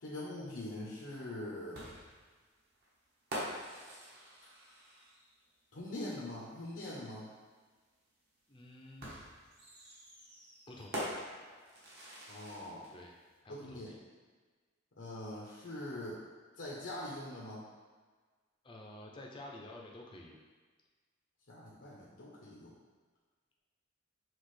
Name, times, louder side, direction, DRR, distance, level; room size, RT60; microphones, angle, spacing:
voice 1, 0.0-1.9 5.7-7.3 12.3-12.8 13.5-13.9 15.0-16.2 16.6-17.7 21.5-22.8, left 1 dB, 70° left, -6 dB, 0.8 m, -43 dB
sound 1, 1.7-5.4 6.9-7.0 9.0-12.9, equal, 55° right, 1.1 m, -45 dB
voice 2, 8.5-9.3 10.7-11.1 12.9-13.2 13.4-14.0 18.6-20.4, left 1 dB, 25° left, -1 dB, 0.5 m, -50 dB
5.9 x 2.4 x 3.2 m, 1.4 s
head